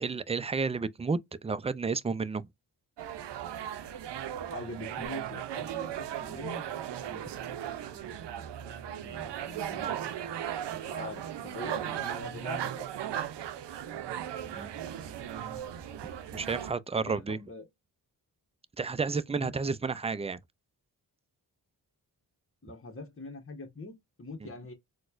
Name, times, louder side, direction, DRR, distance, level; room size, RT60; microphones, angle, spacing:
voice 1, 0.0-2.4 7.1-7.2 14.5-14.7 15.1-15.6 16.3-17.4 18.8-20.4 24.4-24.5, right 4 dB, 15° right, 0.3 m, -32 dB
sound 1, 3.0-16.7, right 10 dB, 85° right, 0.6 m, -37 dB
voice 2, 4.5-6.7 7.8-10.3 10.8-12.9 16.9-17.7 19.0-19.5 19.8-20.0 22.6-24.7, left 2 dB, 30° left, 1.2 m, -44 dB
4.2 x 2.2 x 2.4 m
cardioid pair, 60°, 41 cm